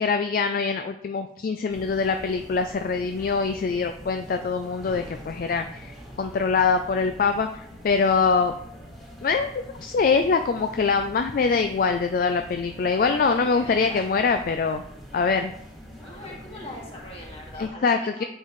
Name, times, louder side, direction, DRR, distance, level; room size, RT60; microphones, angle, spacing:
voice 1, 0.0-8.5 9.2-9.5 9.8-14.8 15.1-15.5 17.6-18.2, left 5 dB, 50° left, 7 dB, 0.3 m, -24 dB
sound 1, 1.7-17.7, equal, ahead, 1.7 m, -44 dB
voice 2, 12.7-14.0 16.0-18.3, left 1 dB, 30° left, -3 dB, 1.8 m, -41 dB
7.6 x 5.4 x 3.1 m, 0.75 s
head